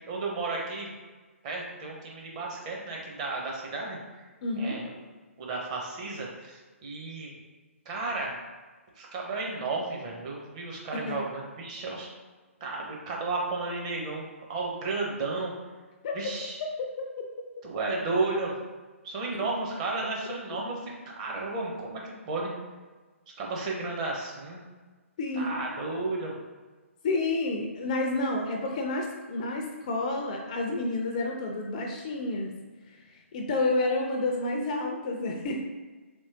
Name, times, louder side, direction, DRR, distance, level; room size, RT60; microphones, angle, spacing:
voice 1, 0.1-0.9 1.4-4.2 4.6-4.9 5.4-7.3 7.9-8.3 9.0-12.1 12.6-15.5 16.1-16.6 17.6-18.5 19.0-22.5 23.4-24.7 25.3-26.4, right 3 dB, 30° right, -2 dB, 0.7 m, -33 dB
voice 2, 4.4-4.8 10.9-11.2 16.0-16.1 25.2-25.6 27.0-32.6 33.3-35.6, left 2 dB, 30° left, 1 dB, 0.4 m, -29 dB
3.5 x 2.9 x 2.8 m, 1.3 s
figure-of-eight pair, 130°, 8 cm